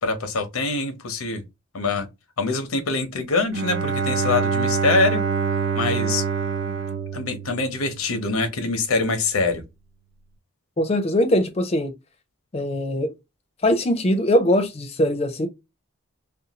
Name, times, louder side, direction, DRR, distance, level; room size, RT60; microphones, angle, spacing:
voice 1, 0.0-1.4 1.7-2.1 2.4-5.2 5.7-6.2 7.1-9.6, left 3 dB, 85° left, 0.7 m, -24 dB
Bowed string instrument, 3.5-8.2, right 6 dB, 55° right, 0.4 m, -25 dB
voice 2, 10.8-11.9 12.5-13.1 13.6-15.5, left 1 dB, 30° left, 0.4 m, -21 dB
2.5 x 2.2 x 2.8 m
head